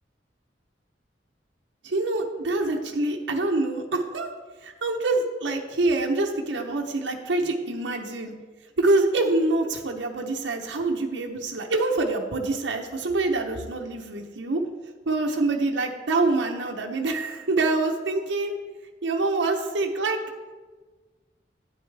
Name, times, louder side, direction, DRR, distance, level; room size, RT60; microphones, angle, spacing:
voice 1, 1.8-4.3 4.6-8.3 8.8-14.6 15.1-18.5 19.0-20.2, right 2 dB, 85° right, 2 dB, 0.8 m, -25 dB
8.8 x 8.8 x 3.4 m, 1.3 s
head